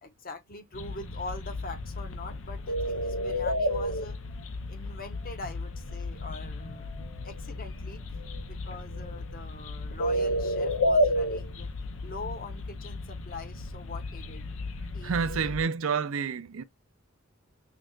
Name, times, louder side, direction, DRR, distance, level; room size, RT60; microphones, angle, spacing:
voice 1, 0.0-8.0 8.5-11.7 12.0-14.6 14.9-15.5, left 3 dB, 45° left, 1.1 m, -43 dB
sound 1, 0.7-15.6, left 1 dB, 75° left, 0.7 m, -32 dB
voice 2, 15.0-16.6, right 6 dB, 75° right, 0.5 m, -29 dB
6.1 x 2.4 x 2.4 m
head